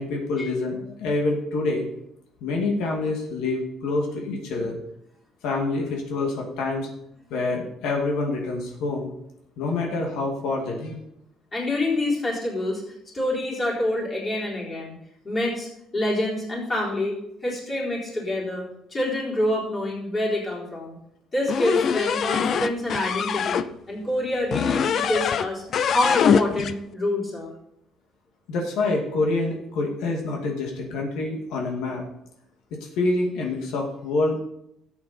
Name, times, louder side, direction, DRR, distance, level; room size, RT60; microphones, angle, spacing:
voice 1, 0.0-1.9 2.4-4.8 5.4-6.9 7.3-9.1 9.6-11.0 28.5-32.0 32.7-34.4, left 3 dB, 80° left, 0 dB, 2.2 m, -26 dB
voice 2, 11.5-12.8 13.1-15.0 15.2-17.1 17.4-18.6 18.9-21.0 21.3-27.5, left 1 dB, 20° left, -5 dB, 4.1 m, -27 dB
sound 1, 21.5-23.7 24.5-25.5 25.7-26.8, left 7 dB, 45° left, 0.5 m, -23 dB
13.0 x 8.5 x 4.3 m, 0.79 s
cardioid pair, 155°, 0 cm